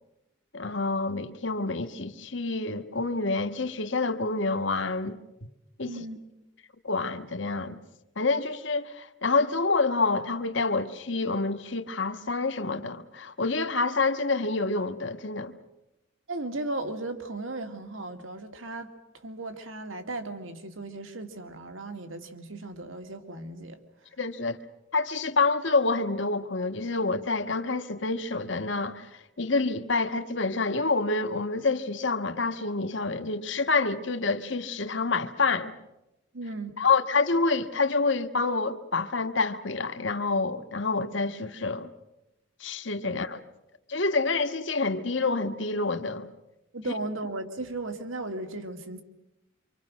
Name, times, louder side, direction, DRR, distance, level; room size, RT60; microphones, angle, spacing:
voice 1, 0.5-5.2 5.8-6.0 6.8-7.8 8.1-15.5 24.2-24.6 24.9-35.7 36.8-41.9 42.6-43.4 43.9-46.3, left 3 dB, 70° left, 1.5 m, -27 dB
voice 2, 5.8-6.2 16.3-23.8 36.3-36.7 43.0-43.2 46.7-49.0, right 2 dB, 90° right, 2.3 m, -36 dB
27.0 x 25.5 x 6.4 m
head